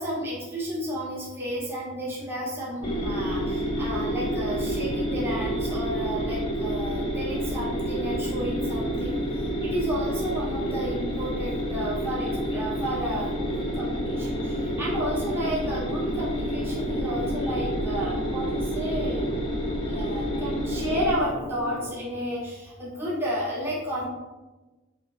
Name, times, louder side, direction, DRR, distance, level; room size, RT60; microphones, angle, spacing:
voice 1, 0.0-9.2 9.6-19.2 19.9-24.0, equal, 10° right, -7 dB, 1.6 m, -32 dB
sound 1, 2.8-21.1, equal, 25° left, 1.0 m, -29 dB
sound 2, 13.2-21.9, left 1 dB, 30° right, 1.5 m, -36 dB
8.0 x 3.1 x 4.0 m, 1.2 s
head